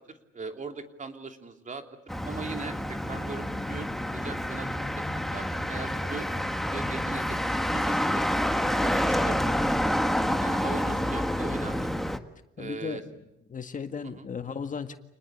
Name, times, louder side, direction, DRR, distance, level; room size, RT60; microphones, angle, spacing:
voice 1, 0.3-1.8 2.2-4.7 5.3-6.3 6.7-8.3 8.8-9.8 10.4-11.9 12.6-13.0 14.0-14.3, right 4 dB, 40° right, 5 dB, 3.1 m, -39 dB
Motor vehicle (road), 2.1-12.2, equal, ahead, 1.6 m, -28 dB
voice 2, 12.6-13.0 13.5-15.0, left 6 dB, 40° left, 8 dB, 1.8 m, -35 dB
29.0 x 20.5 x 8.5 m, 0.88 s
cardioid pair, 90°, 20 cm